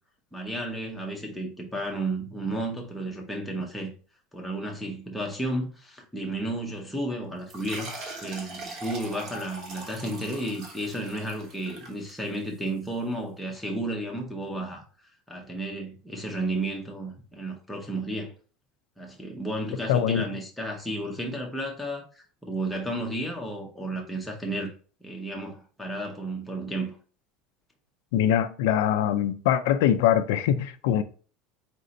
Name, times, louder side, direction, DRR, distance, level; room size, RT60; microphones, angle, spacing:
voice 1, 0.3-3.9 4.3-14.8 15.3-18.3 19.0-24.7 25.0-27.0, right 1 dB, ahead, 0.7 m, -33 dB
sound 1, 7.5-12.6, right 2 dB, 35° right, 1.0 m, -41 dB
voice 2, 19.9-20.3 28.1-31.0, left 10 dB, 80° left, 0.4 m, -23 dB
4.2 x 2.6 x 3.9 m
cardioid pair, 180°, 0 cm